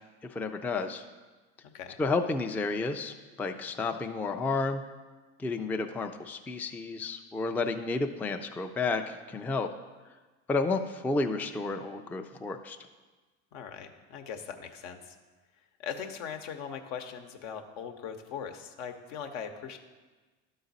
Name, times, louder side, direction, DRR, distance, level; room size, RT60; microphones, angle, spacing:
voice 1, 0.3-1.0 2.0-4.8 5.4-9.7 10.5-12.8, left 3 dB, 5° left, 5 dB, 0.3 m, -31 dB
voice 2, 13.5-15.1 15.8-19.8, left 7 dB, 70° left, 6 dB, 0.9 m, -40 dB
12.0 x 4.0 x 4.0 m, 1.3 s
hypercardioid pair, 80°, 34 cm